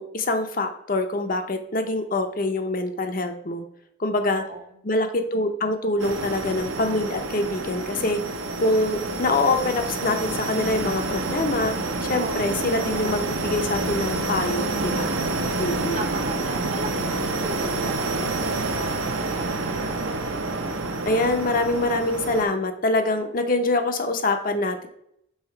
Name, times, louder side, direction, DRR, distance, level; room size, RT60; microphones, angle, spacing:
voice 1, 0.0-3.7 4.0-4.4 4.8-8.2 8.6-11.8 12.0-15.2 15.6-16.0 21.0-24.9, left 2 dB, 40° left, 6 dB, 0.6 m, -25 dB
voice 2, 4.2-4.8 12.2-12.6 15.5-19.3, right 3 dB, 35° right, 5 dB, 0.7 m, -38 dB
sound 1, 6.0-22.4, right 2 dB, 70° right, 0.8 m, -28 dB
5.6 x 4.0 x 4.5 m, 0.74 s
head